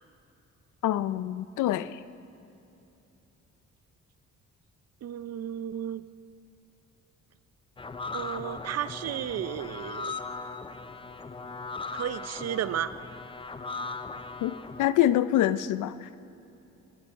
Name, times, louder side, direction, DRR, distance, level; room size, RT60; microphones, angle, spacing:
voice 1, 0.8-2.0 14.4-16.1, left 12 dB, 80° left, 15 dB, 0.6 m, -26 dB
voice 2, 5.0-6.0 8.1-10.1 11.9-12.9, right 10 dB, 55° right, 14 dB, 0.6 m, -33 dB
sound 1, 7.8-14.9, left 3 dB, 15° left, 0.6 m, -38 dB
20.5 x 11.5 x 4.5 m, 2.9 s
cardioid pair, 90°, 30 cm